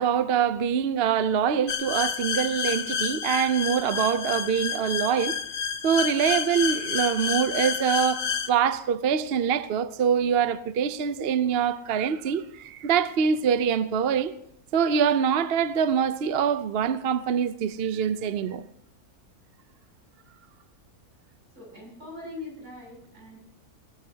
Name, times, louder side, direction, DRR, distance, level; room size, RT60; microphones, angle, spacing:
voice 1, 0.0-5.4 5.8-14.3 14.7-18.7, right 7 dB, 55° right, 0.7 m, -24 dB
sound 1, 1.7-8.5, left 7 dB, 75° left, 1.5 m, -29 dB
voice 2, 21.5-23.4, left 2 dB, 75° right, 8.2 m, -41 dB
20.5 x 18.5 x 2.8 m
omnidirectional pair, 1.6 m